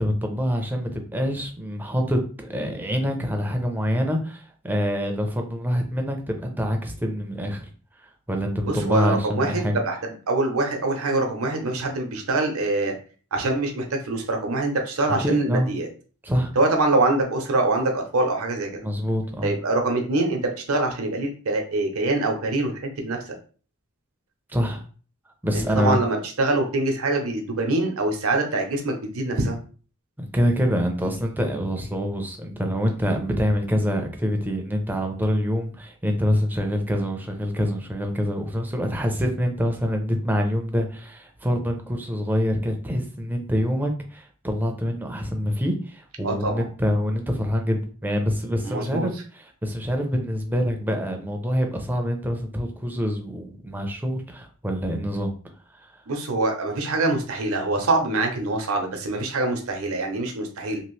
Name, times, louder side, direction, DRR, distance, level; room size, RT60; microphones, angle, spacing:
voice 1, 0.0-7.7 8.3-9.7 15.2-15.7 16.2-16.5 18.8-19.5 24.5-24.8 25.4-26.0 30.2-55.3, equal, 10° right, 3 dB, 0.5 m, -25 dB
voice 2, 8.7-12.9 13.3-15.9 16.6-18.9 19.4-20.4 20.7-23.4 25.5-29.6 46.2-46.6 48.6-49.1 56.1-60.8, right 2 dB, 75° right, 2 dB, 0.7 m, -24 dB
2.9 x 2.4 x 3.1 m, 0.40 s
head